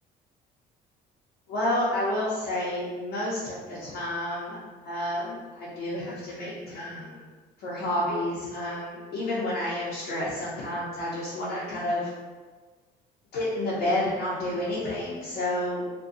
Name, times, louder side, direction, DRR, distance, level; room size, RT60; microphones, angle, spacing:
voice 1, 1.5-4.6 4.8-7.2 7.6-12.1 13.3-15.8, left 1 dB, 75° left, -8 dB, 0.7 m, -30 dB
2.6 x 2.2 x 2.4 m, 1.4 s
cardioid pair, 110°, 17 cm